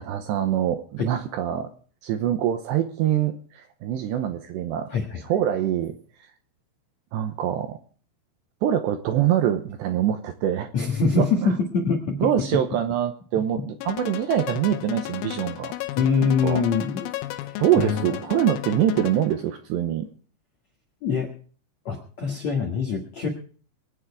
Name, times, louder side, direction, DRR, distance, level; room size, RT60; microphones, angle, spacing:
voice 1, 0.0-1.7 2.0-4.9 5.2-6.0 7.1-7.8 8.6-10.7 11.2-11.5 12.2-15.7 16.4-16.6 17.6-20.1, right 10 dB, 75° right, 7 dB, 2.7 m, -24 dB
voice 2, 4.9-5.2 10.7-12.3 16.0-17.1 17.4-18.1 21.0-21.3 21.9-23.3, left 5 dB, 60° left, 0 dB, 1.8 m, -24 dB
sound 1, 13.8-19.5, left 15 dB, 90° left, 3.6 m, -33 dB
22.5 x 9.3 x 4.8 m, 0.42 s
omnidirectional pair, 5.8 m